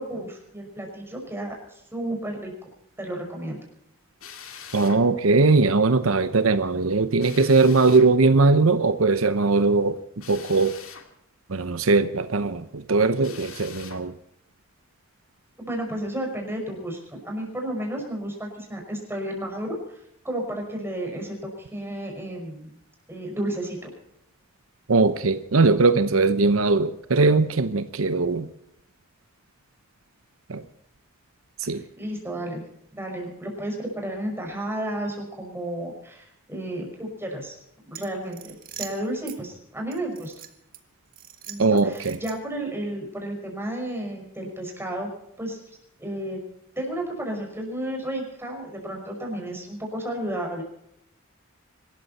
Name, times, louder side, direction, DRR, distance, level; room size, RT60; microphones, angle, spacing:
voice 1, 0.0-2.5 3.0-3.6 15.6-17.0 17.2-20.0 20.2-22.8 23.1-23.9 31.7-32.6 32.9-37.5 37.9-40.3 41.5-45.1 45.4-45.6 46.0-46.4 46.8-50.6, right 1 dB, 10° right, 5.5 m, -32 dB
Drill, 4.2-5.0 7.2-8.1 10.2-11.1 13.2-14.0, left 7 dB, 85° left, 2.2 m, -43 dB
voice 2, 4.7-10.8 11.5-14.1 24.9-28.5 30.5-30.6 31.6-31.8 41.6-42.2, right 3 dB, 85° right, 0.9 m, -20 dB
sound 1, 37.9-39.4 39.9-40.8 41.1-42.6, right 9 dB, 45° right, 1.7 m, -42 dB
25.0 x 13.0 x 4.2 m
head